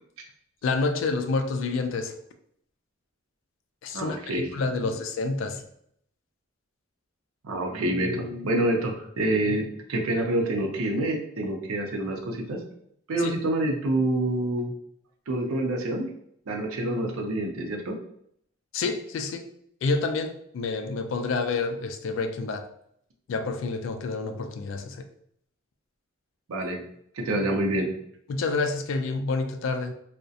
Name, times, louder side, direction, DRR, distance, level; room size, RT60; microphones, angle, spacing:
voice 1, 0.6-2.1 3.8-5.6 13.2-13.3 18.7-19.5 19.8-22.7 23.3-25.1 28.3-29.9, left 3 dB, 65° left, 0.3 m, -28 dB
voice 2, 3.9-4.5 4.8-4.9 7.4-12.6 13.1-14.7 15.3-16.1 16.5-18.0 26.5-26.8 27.1-27.9, right 1 dB, 90° right, 0.5 m, -27 dB
2.6 x 2.0 x 2.3 m
head